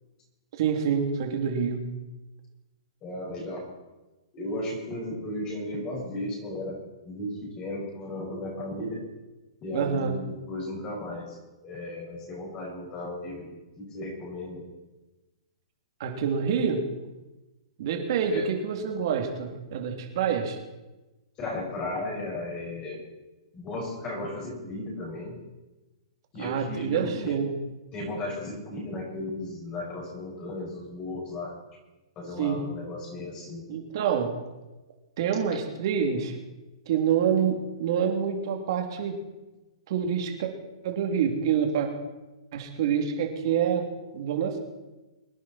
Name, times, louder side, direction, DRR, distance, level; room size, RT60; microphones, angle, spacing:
voice 1, 0.6-1.8 9.7-10.1 16.0-16.8 17.8-20.6 26.4-27.5 32.4-32.6 33.7-34.3 35.2-36.3 36.9-39.1 39.9-40.5 40.8-41.9 42.5-43.9 44.1-44.6, right 7 dB, 50° right, 3 dB, 3.2 m, -27 dB
voice 2, 3.0-3.7 4.3-9.0 9.6-14.7 18.3-18.5 21.4-23.0 23.5-25.4 26.3-27.4 27.9-31.6 32.2-33.6, left 1 dB, 25° left, -2 dB, 5.7 m, -35 dB
24.0 x 10.5 x 4.5 m, 1.1 s
hypercardioid pair, 150°, 3 cm